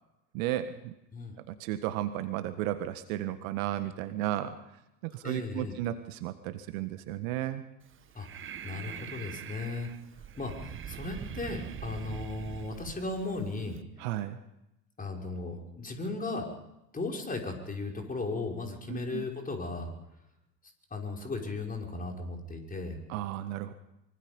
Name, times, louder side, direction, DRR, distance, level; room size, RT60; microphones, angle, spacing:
voice 1, 0.3-0.9 1.5-4.6 5.0-7.6 14.0-14.4 18.9-19.2 23.1-23.7, right 13 dB, 55° right, 11 dB, 1.6 m, -34 dB
voice 2, 5.2-5.7 8.1-8.3 8.6-9.9 10.4-13.8 15.0-16.5 16.9-19.9 20.9-23.0, left 3 dB, 15° left, 1 dB, 5.8 m, -36 dB
Breathing, 7.8-13.8, right 9 dB, 25° right, 1.2 m, -43 dB
24.5 x 24.5 x 5.5 m, 0.89 s
figure-of-eight pair, 80°, 50 cm